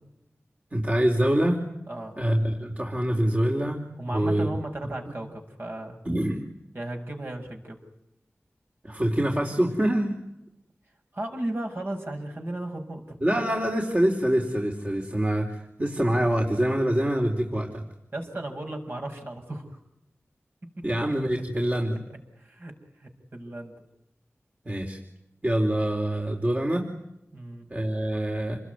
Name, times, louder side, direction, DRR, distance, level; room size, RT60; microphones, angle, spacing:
voice 1, 0.7-1.6 2.2-3.8 4.1-4.5 6.0-6.4 8.8-10.1 13.2-17.8 20.8-22.0 24.7-25.0 25.4-26.9 27.7-28.6, right 1 dB, 30° right, 1 dB, 4.3 m, -25 dB
voice 2, 1.9-2.2 4.0-6.0 6.7-7.8 11.1-13.2 18.1-19.6 20.8-20.9 22.4-22.7 23.0-23.7 27.3-27.7, right 1 dB, 50° right, 3 dB, 6.7 m, -35 dB
28.5 x 21.5 x 9.7 m, 0.83 s
wide cardioid pair, 70°, 5 cm